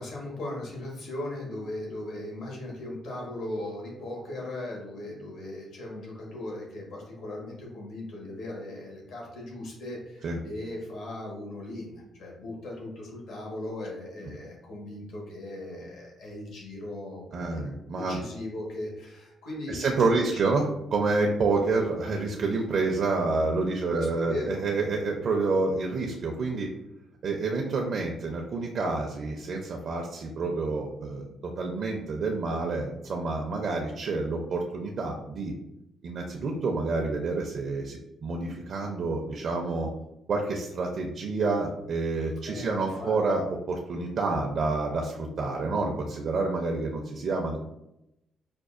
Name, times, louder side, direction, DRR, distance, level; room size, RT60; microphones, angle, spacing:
voice 1, 0.0-17.7 18.0-19.8 20.0-20.4 23.9-24.6 42.4-43.4, left 1 dB, 75° left, -2 dB, 1.3 m, -38 dB
voice 2, 17.3-18.2 19.7-26.7 27.2-31.3 31.6-35.5 36.0-39.9 40.3-47.6, right 3 dB, 60° right, 0 dB, 0.5 m, -28 dB
5.1 x 2.2 x 2.4 m, 0.86 s
cardioid pair, 90°, 0 cm